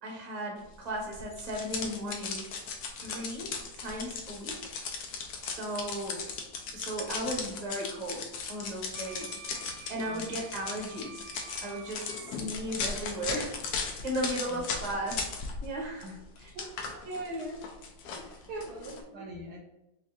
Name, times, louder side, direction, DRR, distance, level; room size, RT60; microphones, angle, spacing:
voice 1, 0.0-2.5 3.0-4.6 5.4-6.2 6.7-8.2 8.5-9.4 9.9-11.2 11.6-13.6 13.8-15.2 15.6-16.1 16.4-16.5 17.0-17.6 18.5-19.2, right 1 dB, 45° right, -2 dB, 0.5 m, -36 dB
sound 1, 1.1-15.7 16.0-19.0, left 5 dB, 70° left, 1.0 m, -37 dB
Wind instrument woodwind instrument, 8.9-12.3, right 7 dB, 90° right, 1.4 m, -49 dB
voice 2, 14.4-14.8 16.0-16.2 16.5-17.1 18.1-19.6, equal, 70° right, 0 dB, 1.0 m, -46 dB
4.3 x 2.6 x 2.5 m, 0.93 s
omnidirectional pair, 2.1 m